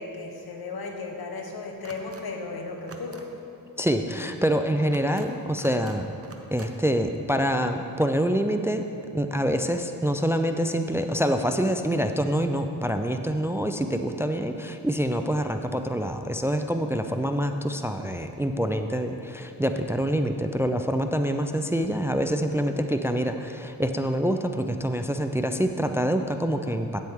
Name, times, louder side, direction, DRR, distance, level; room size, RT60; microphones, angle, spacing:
voice 1, 0.0-3.2, left 3 dB, 75° left, 2 dB, 1.1 m, -35 dB
sound 1, 1.8-2.2 2.8-3.2 4.8-5.3 5.6-6.0 6.2-6.7, right 4 dB, 40° right, 0.8 m, -47 dB
voice 2, 3.8-6.0 6.5-8.8 9.1-27.0, equal, 5° right, 7 dB, 0.4 m, -26 dB
9.4 x 7.5 x 3.6 m, 2.6 s
cardioid pair, 55°, 37 cm